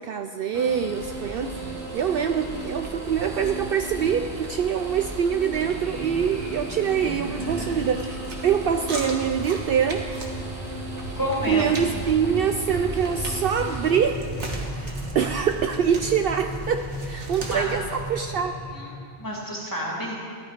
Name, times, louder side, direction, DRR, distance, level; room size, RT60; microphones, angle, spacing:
voice 1, 0.0-1.5 1.9-8.2 8.4-10.1 11.5-14.3 14.7-14.9 15.1-18.6, right 7 dB, 65° right, 7 dB, 0.7 m, -24 dB
sound 1, 0.5-13.9, right 2 dB, 15° right, 1.4 m, -37 dB
sound 2, 0.9-18.1, right 2 dB, 85° right, 1.8 m, -37 dB
sound 3, 5.5-19.0, equal, 40° right, 2.9 m, -37 dB
voice 2, 11.2-11.7 17.4-17.7 18.7-20.2, equal, 15° left, -3 dB, 2.5 m, -29 dB
14.0 x 11.0 x 5.1 m, 2.3 s
omnidirectional pair, 1.1 m